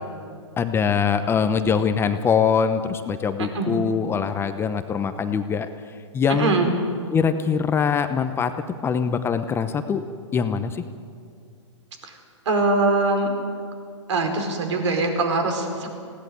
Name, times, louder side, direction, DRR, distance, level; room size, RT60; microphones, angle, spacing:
voice 1, 0.6-5.7 6.1-6.5 7.1-8.5 8.8-10.0 10.3-10.8, left 6 dB, 15° left, 9 dB, 0.8 m, -23 dB
voice 2, 3.4-3.7 6.3-6.7 12.0-12.1 12.4-13.3 14.1-15.9, right 3 dB, 65° right, 5 dB, 4.7 m, -22 dB
20.5 x 16.5 x 9.3 m, 2.3 s
hypercardioid pair, 135°, 16 cm